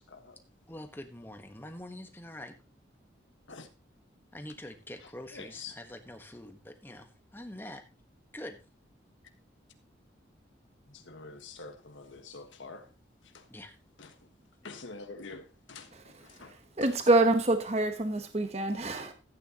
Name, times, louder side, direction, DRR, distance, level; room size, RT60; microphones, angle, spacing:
voice 1, 0.7-2.5 4.3-7.8 8.3-8.6 13.5-13.8, left 1 dB, 10° left, 1.2 m, -45 dB
voice 2, 5.0-5.7 10.9-12.9 13.3-13.5 14.0-14.2 14.6-16.5 16.8-16.9, left 4 dB, 85° left, 1.4 m, -46 dB
voice 3, 16.8-19.1, right 2 dB, 35° right, 1.0 m, -26 dB
14.0 x 9.2 x 2.9 m
head